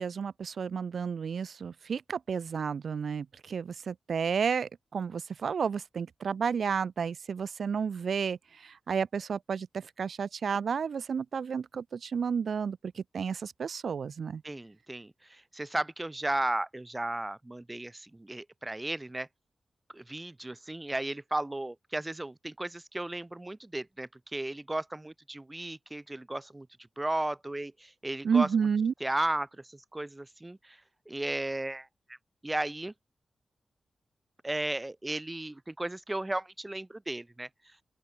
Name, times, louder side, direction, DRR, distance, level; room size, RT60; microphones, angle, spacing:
voice 1, 0.0-14.4 28.2-28.9, right 6 dB, 65° right, 3.2 m, -31 dB
voice 2, 14.4-19.3 19.9-26.7 27.0-28.5 29.0-30.8 31.1-32.2 32.4-32.9 34.4-37.5, right 1 dB, 15° right, 1.2 m, -35 dB
open air
wide cardioid pair, 160°, 0 cm